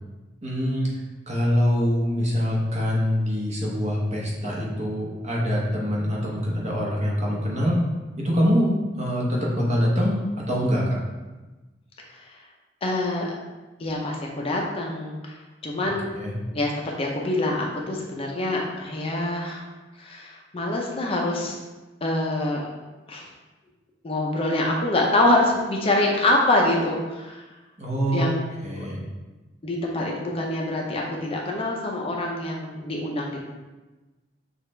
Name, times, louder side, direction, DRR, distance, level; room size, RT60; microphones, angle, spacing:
voice 1, 0.4-0.9 1.3-7.8 8.2-11.0 16.1-16.3 27.8-28.2 28.6-29.0, equal, 35° right, -4 dB, 1.0 m, -24 dB
voice 2, 12.8-13.4 13.8-15.4 15.6-16.1 16.5-19.6 20.0-21.6 22.0-22.7 23.1-23.2 24.0-27.4 28.1-28.4 28.8-28.9 29.6-33.4, left 1 dB, 30° left, -1 dB, 0.5 m, -25 dB
6.2 x 2.4 x 3.2 m, 1.2 s
head